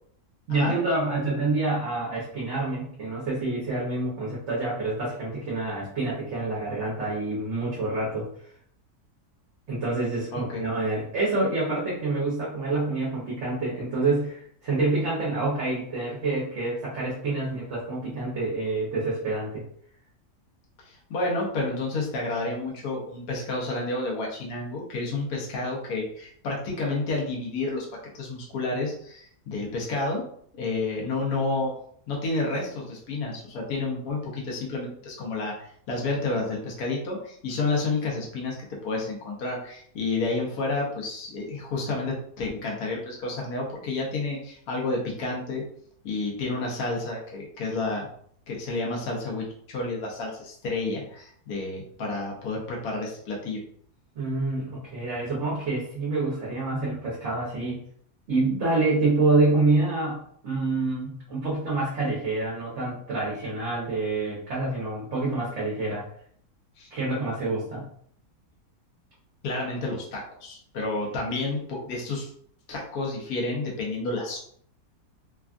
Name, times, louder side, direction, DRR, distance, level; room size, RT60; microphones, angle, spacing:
voice 1, 0.5-8.3 9.7-19.7 54.1-57.8 58.3-66.1 66.9-67.8, right 2 dB, 55° right, -6 dB, 1.1 m, -27 dB
voice 2, 10.3-10.6 20.8-27.9 28.1-30.2 30.6-31.7 32.1-38.5 38.8-45.6 46.0-48.1 48.5-53.6 66.8-66.9 69.4-72.3 72.7-74.4, left 3 dB, 75° left, -2 dB, 1.3 m, -30 dB
3.4 x 2.3 x 2.4 m, 0.63 s
omnidirectional pair, 1.7 m